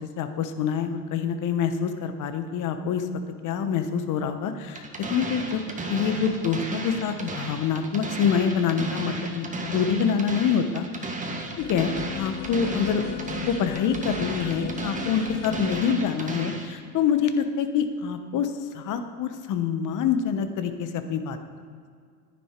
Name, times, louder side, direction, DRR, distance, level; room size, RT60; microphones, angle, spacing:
voice 1, 0.2-3.1 3.4-4.8 5.1-5.6 5.9-11.2 11.6-21.4, left 7 dB, 40° left, 9 dB, 1.1 m, -26 dB
sound 1, 4.7-16.7, right 2 dB, 15° right, 1.6 m, -34 dB
sound 2, 11.6-16.0, left 10 dB, 60° left, 0.9 m, -36 dB
11.0 x 9.8 x 4.5 m, 2.1 s
hypercardioid pair, 95°, 48 cm